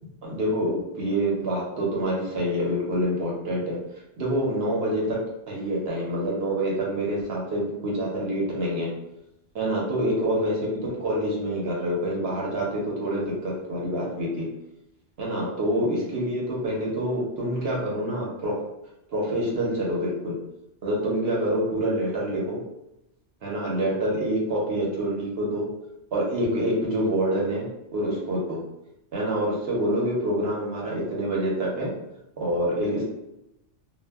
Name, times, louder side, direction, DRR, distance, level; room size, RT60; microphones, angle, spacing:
voice 1, 0.2-3.8 4.2-5.2 5.5-8.9 9.5-14.5 15.2-18.6 19.1-20.3 20.8-22.6 23.4-25.7 26.1-27.7 27.9-28.6 29.1-31.9 32.4-33.0, right 1 dB, 65° right, -4 dB, 0.9 m, -26 dB
2.1 x 2.0 x 3.3 m, 0.88 s
omnidirectional pair, 1.2 m